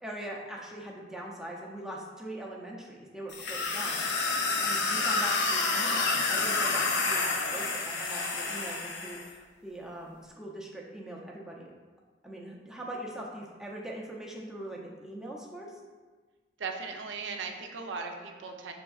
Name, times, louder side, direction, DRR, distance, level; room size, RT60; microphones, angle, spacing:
voice 1, 0.0-4.0 4.6-11.7 12.2-15.8, right 1 dB, 5° right, -3 dB, 0.5 m, -41 dB
sound 1, 3.3-9.3, left 3 dB, 80° left, 0.6 m, -29 dB
voice 2, 16.6-18.7, right 4 dB, 90° right, 3 dB, 0.5 m, -37 dB
5.9 x 3.5 x 2.3 m, 1.4 s
head